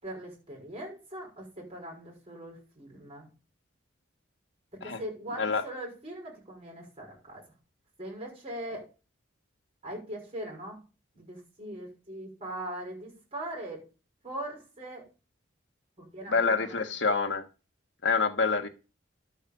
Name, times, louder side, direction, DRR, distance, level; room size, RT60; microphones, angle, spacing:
voice 1, 0.0-3.3 4.7-7.4 8.0-8.9 9.8-10.8 11.1-13.9 14.2-15.0 16.0-16.8, right 1 dB, 30° right, 1 dB, 5.9 m, -41 dB
voice 2, 16.3-17.4 18.0-18.7, left 4 dB, 65° left, 7 dB, 1.4 m, -26 dB
12.0 x 4.8 x 6.9 m, 0.33 s
head